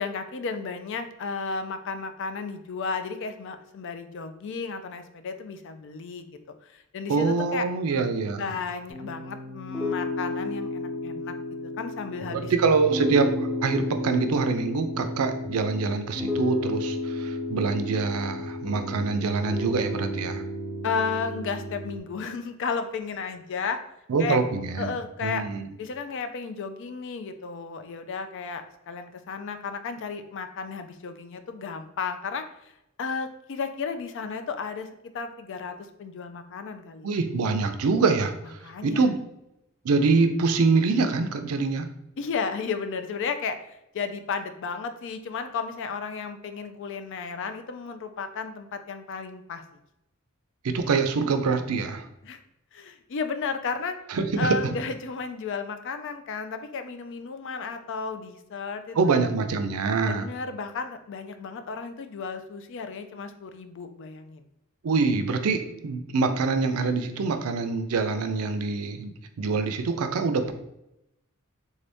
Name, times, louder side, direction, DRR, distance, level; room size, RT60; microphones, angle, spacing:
voice 1, 0.0-6.3 6.6-7.7 8.4-11.4 11.8-12.5 20.8-23.8 24.2-24.4 24.8-25.5 25.8-32.7 33.0-37.1 38.6-39.1 42.2-49.6 52.2-52.4 52.7-54.0 54.4-59.0 60.0-64.4, left 5 dB, 55° left, 9 dB, 0.4 m, -33 dB
voice 2, 7.1-8.5 12.3-20.4 24.1-25.0 25.2-25.7 37.0-39.2 39.8-41.9 50.6-52.1 54.1-54.7 59.0-60.3 64.8-70.5, right 4 dB, 75° right, 8 dB, 0.4 m, -25 dB
Piano, 8.9-22.0, left 2 dB, 5° left, 0.7 m, -32 dB
3.7 x 2.6 x 3.4 m, 0.85 s
head